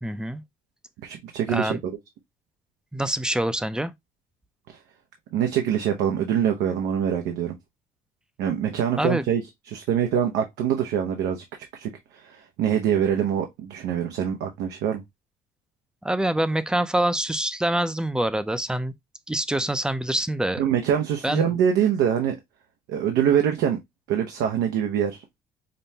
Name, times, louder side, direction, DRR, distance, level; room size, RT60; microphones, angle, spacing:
voice 1, 0.0-0.4 1.5-1.8 2.9-3.9 9.0-9.3 16.0-18.9 19.3-20.6 21.2-21.5, right 1 dB, 5° right, 0.4 m, -25 dB
voice 2, 1.0-1.8 5.3-7.5 8.4-9.4 9.7-11.4 11.7-15.0 20.6-22.4 22.9-23.8 24.1-25.2, right 9 dB, 90° right, 0.7 m, -24 dB
5.3 x 2.1 x 2.7 m
cardioid pair, 110°, 17 cm